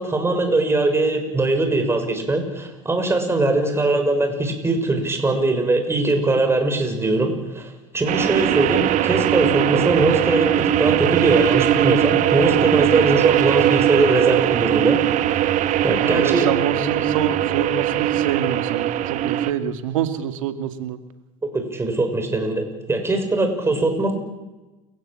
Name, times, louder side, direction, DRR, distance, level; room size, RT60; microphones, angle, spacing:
voice 1, 0.0-15.0 15.8-16.5 21.5-24.1, right 2 dB, 15° right, 5 dB, 6.5 m, -21 dB
sound 1, 8.1-19.5, right 12 dB, 50° right, 1.6 m, -20 dB
voice 2, 16.0-21.0, right 9 dB, 85° right, 9 dB, 2.3 m, -26 dB
29.5 x 16.0 x 8.9 m, 1.1 s
supercardioid pair, 105°, 16 cm